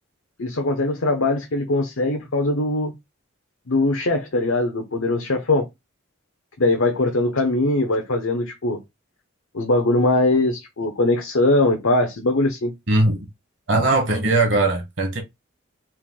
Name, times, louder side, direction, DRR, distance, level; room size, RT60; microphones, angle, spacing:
voice 1, 0.4-2.9 3.7-5.7 6.6-8.8 9.5-12.7, left 2 dB, 80° left, 0.9 m, -21 dB
voice 2, 12.9-13.2 13.7-15.2, right 2 dB, 60° right, 1.4 m, -19 dB
4.5 x 2.6 x 3.8 m
head